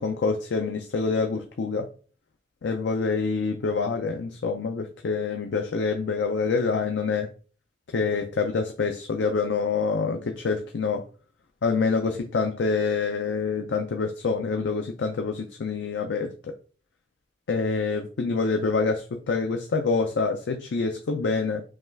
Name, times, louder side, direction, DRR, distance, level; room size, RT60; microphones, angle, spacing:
voice 1, 0.0-1.9 2.6-7.3 7.9-11.0 11.6-16.5 17.5-21.6, left 4 dB, 85° left, 0.5 m, -26 dB
5.5 x 2.3 x 3.3 m
head